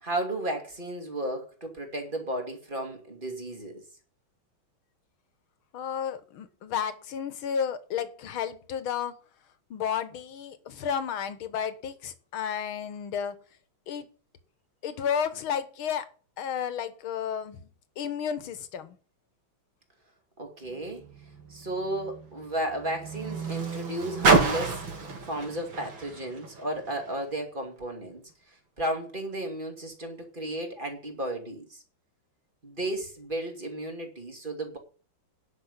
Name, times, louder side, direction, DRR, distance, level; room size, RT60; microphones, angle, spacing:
voice 1, 0.0-3.8 20.4-21.1 21.5-31.8 32.6-34.8, right 1 dB, 25° right, 2.7 m, -34 dB
voice 2, 5.7-9.1 9.7-13.4 13.9-14.1 14.8-16.1 16.4-17.7 18.0-19.0, left 8 dB, 80° left, 2.1 m, -32 dB
Car, 20.6-27.2 28.0-28.1, right 4 dB, 70° right, 3.0 m, -29 dB
10.5 x 6.5 x 8.1 m
omnidirectional pair, 2.2 m